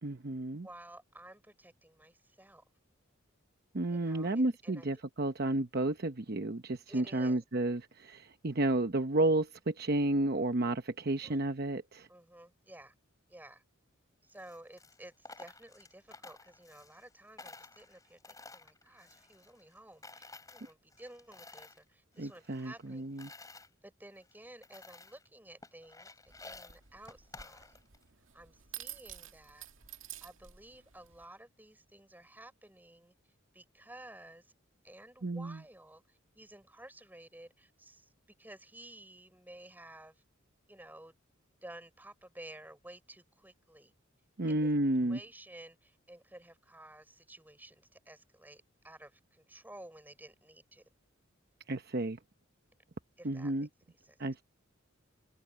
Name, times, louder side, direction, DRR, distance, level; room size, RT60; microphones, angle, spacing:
voice 1, 0.0-0.7 3.7-12.1 22.2-23.3 35.2-35.6 44.4-45.2 51.7-52.2 53.2-53.7 54.2-54.4, right 2 dB, 50° right, 0.9 m, -31 dB
voice 2, 0.6-2.6 3.9-4.9 6.9-7.4 11.2-11.4 12.1-12.9 13.3-13.6 14.2-23.2 23.8-26.1 26.4-27.8 28.3-29.7 30.2-33.1 33.5-34.5 34.8-38.1 38.4-40.2 40.7-41.2 41.6-43.9 44.5-44.7 45.0-50.8 53.2-53.7 54.0-54.2, right 1 dB, 10° right, 6.1 m, -53 dB
Coin (dropping), 14.3-17.1 17.4-19.8 20.0-21.8 22.2-23.7 24.2-24.3 24.6-25.3 25.6-28.0, left 3 dB, 15° left, 6.1 m, -53 dB
sound 1, 26.3-31.3, right 12 dB, 75° right, 2.1 m, -50 dB
head